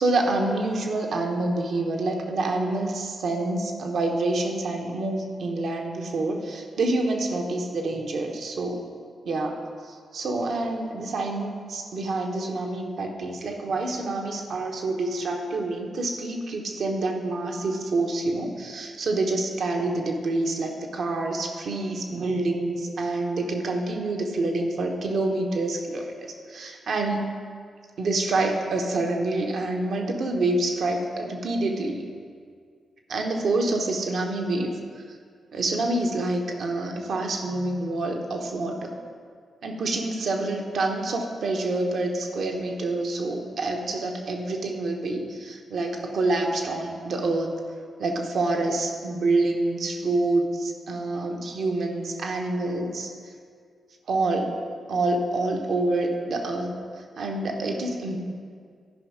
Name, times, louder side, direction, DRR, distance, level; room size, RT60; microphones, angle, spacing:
voice 1, 0.0-8.9 9.2-27.3 28.0-32.0 33.1-35.0 35.5-39.0 39.6-47.5 48.0-53.1 54.1-54.6 54.9-56.7 57.2-58.2, right 2 dB, 70° right, 2 dB, 1.0 m, -27 dB
11.5 x 5.3 x 5.0 m, 2.1 s
hypercardioid pair, 40°, 0 cm